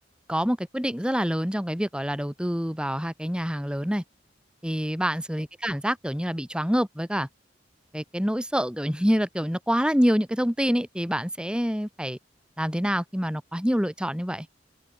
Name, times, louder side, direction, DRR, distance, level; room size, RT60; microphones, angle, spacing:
voice 1, 0.3-4.0 4.6-7.3 7.9-12.2 12.6-14.5, equal, 5° right, 5.6 m, -26 dB
open air
head